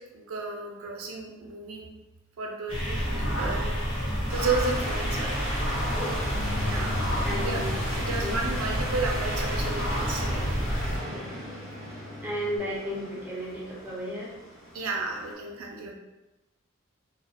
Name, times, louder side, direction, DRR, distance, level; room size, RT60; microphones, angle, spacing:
voice 1, 0.1-1.9 2.4-5.4 6.6-7.0 7.4-7.6 8.0-10.5 14.7-15.9, right 4 dB, 90° right, 0 dB, 0.5 m, -33 dB
sound 1, 2.7-11.0, equal, 65° left, 0.9 m, -29 dB
sound 2, 4.3-15.3, equal, 40° left, 0.9 m, -37 dB
sound 3, 6.3-12.6, left 3 dB, 85° left, 0.6 m, -39 dB
voice 2, 7.2-8.4 11.1-11.2 12.2-14.4 15.8-15.9, equal, 10° right, -6 dB, 0.5 m, -34 dB
2.3 x 2.1 x 2.6 m, 1.0 s
head